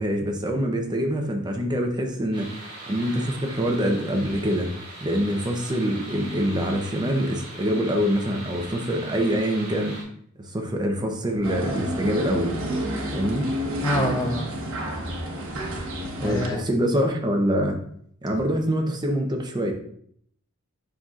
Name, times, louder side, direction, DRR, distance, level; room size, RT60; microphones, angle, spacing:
voice 1, 0.0-4.7 5.0-10.0 10.4-12.6 13.1-13.5 16.2-17.8 18.2-19.7, equal, 20° right, 3 dB, 0.8 m, -25 dB
sound 1, 2.3-10.0, right 2 dB, 50° right, 2.3 m, -40 dB
sound 2, 11.4-16.5, right 1 dB, 65° right, 1.1 m, -29 dB
voice 2, 13.8-14.5 16.2-16.7, left 1 dB, 15° left, 3 dB, 0.5 m, -26 dB
7.8 x 5.6 x 2.5 m, 0.65 s
head